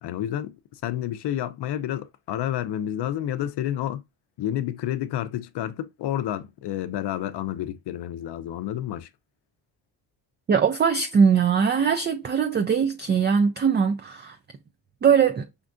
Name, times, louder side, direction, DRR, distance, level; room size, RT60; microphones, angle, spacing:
voice 1, 0.0-4.0 4.4-9.1, left 11 dB, 60° left, 0.6 m, -30 dB
voice 2, 10.5-14.4 15.0-15.5, right 6 dB, 25° right, 0.4 m, -21 dB
5.2 x 2.5 x 2.2 m
supercardioid pair, 65°, 47 cm